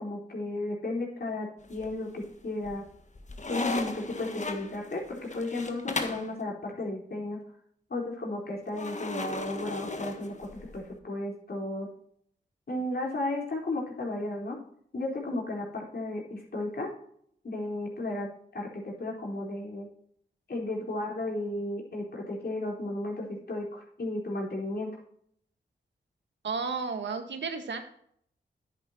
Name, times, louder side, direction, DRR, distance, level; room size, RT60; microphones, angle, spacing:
voice 1, 0.0-2.8 3.5-7.4 7.9-11.9 12.7-14.6 14.9-16.9 17.4-19.9 20.5-24.9, left 2 dB, 55° left, -1 dB, 4.1 m, -34 dB
sound 1, 1.6-2.2 2.6-6.3 8.8-10.8, left 3 dB, 40° left, 1.5 m, -36 dB
voice 2, 26.4-27.8, right 5 dB, 70° right, 6 dB, 1.6 m, -32 dB
10.0 x 9.3 x 2.9 m, 0.65 s
cardioid pair, 45°, 19 cm